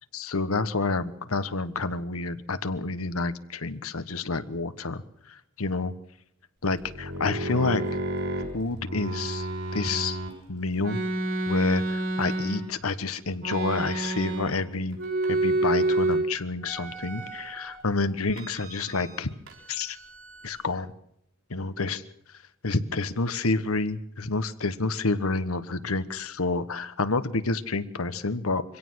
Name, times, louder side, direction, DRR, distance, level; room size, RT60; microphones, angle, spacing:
voice 1, 0.1-5.0 5.6-5.9 6.6-7.8 8.5-9.5 9.7-10.2 10.5-11.0 11.5-15.0 15.3-19.3 19.7-20.0 20.4-20.9 21.5-22.0 22.6-28.6, left 3 dB, 85° left, 12 dB, 1.3 m, -29 dB
sound 1, 6.7-10.3 10.8-12.9 13.4-14.7 14.9-16.2 16.6-17.8 18.3-19.2 19.5-20.7, right 2 dB, 65° right, 6.6 m, -30 dB
24.5 x 17.0 x 6.4 m, 0.75 s
head